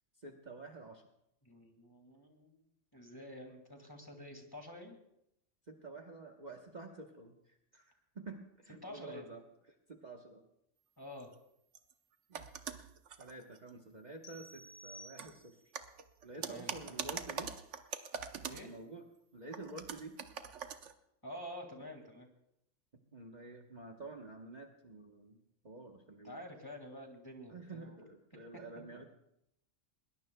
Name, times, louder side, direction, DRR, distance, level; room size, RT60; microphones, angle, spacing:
voice 1, 0.2-1.0 5.7-10.4 12.3-12.5 13.2-15.6 16.2-17.5 18.6-19.0 19.3-20.2 23.1-26.4 27.5-29.0, right 3 dB, 40° right, 3 dB, 1.2 m, -49 dB
voice 2, 1.4-2.7 2.9-5.0 8.8-9.2 11.0-11.3 16.4-17.1 18.4-18.7 21.2-22.3 26.2-28.0, left 1 dB, 20° left, 3 dB, 1.9 m, -49 dB
sound 1, 11.2-11.3 11.7-11.9 12.3-13.7 15.2-15.3 15.7-18.7 19.5-20.9, right 7 dB, 75° right, 1.2 m, -43 dB
sound 2, 14.2-15.8, right 1 dB, 50° left, 1.5 m, -54 dB
21.0 x 20.0 x 2.3 m, 0.79 s
omnidirectional pair, 1.3 m